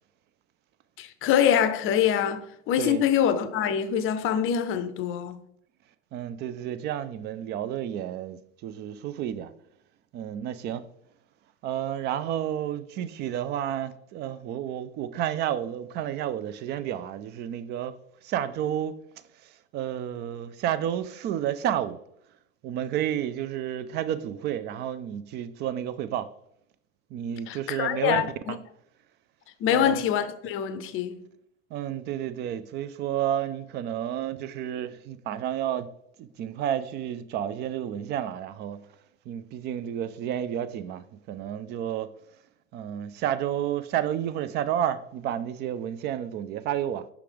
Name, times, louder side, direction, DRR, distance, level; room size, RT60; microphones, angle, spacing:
voice 1, 1.0-5.4 27.5-28.6 29.6-31.2, left 9 dB, 35° left, 0.6 m, -25 dB
voice 2, 2.8-3.1 6.1-9.5 10.1-10.9 11.6-18.0 18.2-19.0 19.4-22.0 22.6-26.3 27.1-28.6 29.7-30.0 31.7-35.9 36.2-38.8 39.3-42.1 42.7-47.1, right 10 dB, 30° right, 0.4 m, -31 dB
5.9 x 4.9 x 3.4 m
hypercardioid pair, 90°, 35 cm